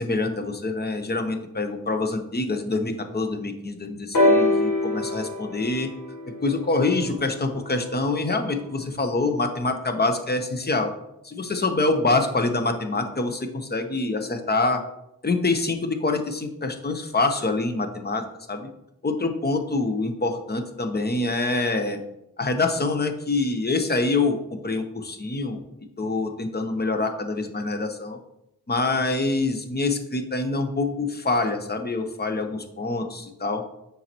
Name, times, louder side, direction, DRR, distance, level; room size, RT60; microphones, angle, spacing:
voice 1, 0.0-5.9 6.4-10.9 11.2-14.8 15.2-18.2 18.5-18.7 19.0-22.0 22.4-25.6 26.0-28.2 28.7-33.6, left 3 dB, 30° left, 6 dB, 0.9 m, -25 dB
sound 1, 4.1-8.0 8.9-9.0, left 2 dB, 75° left, 1.3 m, -24 dB
7.0 x 5.4 x 3.0 m, 0.84 s
cardioid pair, 60°, 33 cm